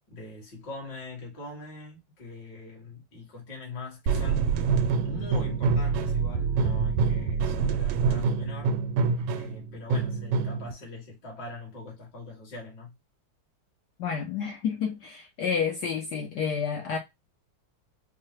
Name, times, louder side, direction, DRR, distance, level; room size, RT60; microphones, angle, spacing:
voice 1, 0.1-4.4 5.0-8.8 9.3-12.9, left 3 dB, 55° left, 2.3 m, -42 dB
sound 1, 4.1-10.7, right 5 dB, 90° right, 1.5 m, -26 dB
voice 2, 14.0-17.0, left 6 dB, 80° left, 0.9 m, -30 dB
4.7 x 2.1 x 2.9 m
omnidirectional pair, 2.4 m